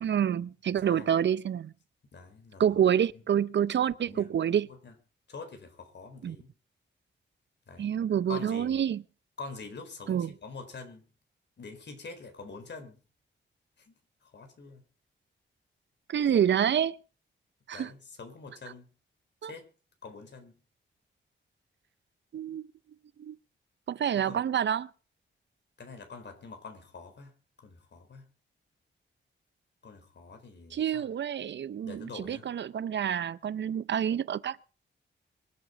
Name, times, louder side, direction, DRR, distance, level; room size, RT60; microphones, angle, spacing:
voice 1, 0.0-1.7 2.6-4.7 6.2-6.4 7.8-9.0 10.1-10.3 16.1-17.0 17.7-17.9 19.4-19.5 22.3-22.7 23.2-23.4 23.9-24.9 30.7-34.6, right 9 dB, 65° right, 0.6 m, -28 dB
voice 2, 2.1-2.8 3.1-3.2 4.1-4.3 4.8-4.9 5.3-6.5 7.7-7.9 8.3-8.8 9.4-11.0 11.6-13.0 13.9-14.0 14.2-14.8 17.7-18.9 19.4-19.7 20.0-20.5 24.1-24.4 25.8-27.3 27.6-28.3 29.8-31.1 31.8-32.5, left 4 dB, 60° left, 4.4 m, -45 dB
24.5 x 8.4 x 5.1 m
cardioid pair, 95°, 20 cm